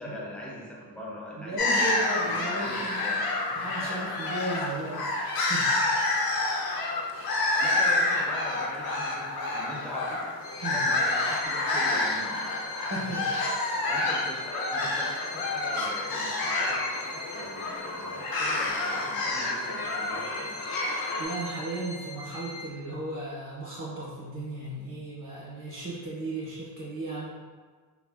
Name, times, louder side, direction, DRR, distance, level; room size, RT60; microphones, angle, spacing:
voice 1, 0.0-4.1 7.6-10.2 10.7-12.5 13.9-20.6, left 1 dB, 5° left, -5 dB, 0.4 m, -41 dB
voice 2, 1.4-3.0 3.5-5.8 7.1-7.4 10.6-10.8 12.9-13.4 21.2-27.3, right 2 dB, 50° right, -7 dB, 0.6 m, -35 dB
sound 1, 1.6-21.2, left 2 dB, 60° left, 0.5 m, -28 dB
Bowed string instrument, 10.4-22.9, left 2 dB, 75° left, 1.1 m, -42 dB
3.1 x 2.4 x 2.3 m, 1.5 s
wide cardioid pair, 150°, 41 cm